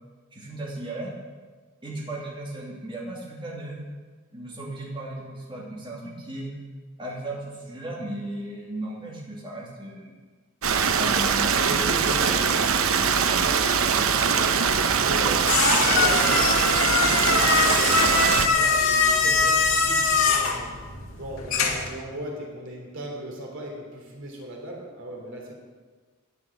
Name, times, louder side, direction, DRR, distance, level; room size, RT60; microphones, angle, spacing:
voice 1, 0.3-1.1 1.8-3.8 4.3-6.5 7.0-10.1 11.0-11.6 16.2-16.7, right 1 dB, 25° right, -4 dB, 2.7 m, -36 dB
Stream, 10.6-18.5, right 6 dB, 80° right, 0.8 m, -22 dB
voice 2, 10.8-11.2 11.6-14.6 14.9-20.7 21.2-25.5, right 1 dB, 60° right, 0 dB, 3.0 m, -37 dB
sound 1, 14.7-22.0, left 4 dB, 90° left, 2.0 m, -23 dB
11.0 x 9.8 x 7.2 m, 1.4 s
head